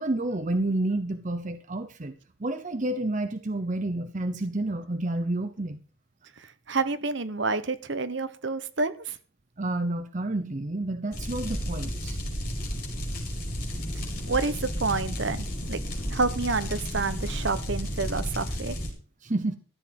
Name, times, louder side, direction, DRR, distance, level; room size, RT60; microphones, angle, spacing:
voice 1, 0.0-2.1 2.4-5.8 9.6-12.2 13.2-13.3 19.2-19.6, right 2 dB, 35° right, 10 dB, 0.7 m, -29 dB
voice 2, 6.4-9.2 14.3-15.8 16.1-18.8, right 3 dB, 60° right, 13 dB, 1.0 m, -29 dB
sound 1, 11.1-18.9, equal, 45° left, 5.0 m, -32 dB
14.0 x 7.4 x 5.9 m, 0.38 s
head